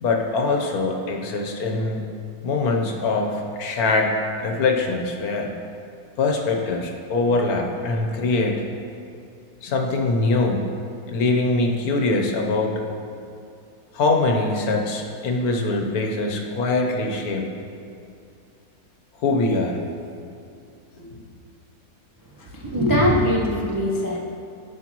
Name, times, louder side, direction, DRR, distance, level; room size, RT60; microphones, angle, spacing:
voice 1, 0.0-2.1 2.4-5.5 6.2-8.6 9.6-10.7 11.1-12.8 13.9-17.4 19.2-19.8 21.0-21.1, left 3 dB, 70° left, 2 dB, 1.4 m, -23 dB
voice 2, 22.4-24.2, equal, 30° right, -3 dB, 0.4 m, -21 dB
13.5 x 5.9 x 3.0 m, 2.5 s
omnidirectional pair, 1.6 m